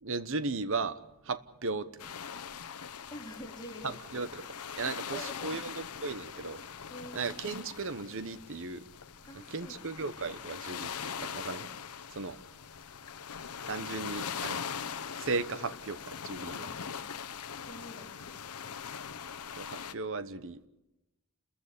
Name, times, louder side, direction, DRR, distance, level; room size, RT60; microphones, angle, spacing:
voice 1, 0.0-1.0 1.2-1.9 3.8-4.4 4.8-6.6 7.1-8.8 9.3-11.7 12.1-12.4 13.7-14.6 15.2-16.7 19.6-20.7, right 4 dB, 60° right, 1.0 m, -36 dB
sound 1, 2.0-19.9, left 7 dB, 85° left, 0.9 m, -41 dB
voice 2, 3.1-4.2 4.8-5.7 6.9-7.3 9.3-10.0 16.6-17.1 17.7-18.7, equal, 20° left, 4.0 m, -48 dB
29.5 x 14.5 x 8.3 m
head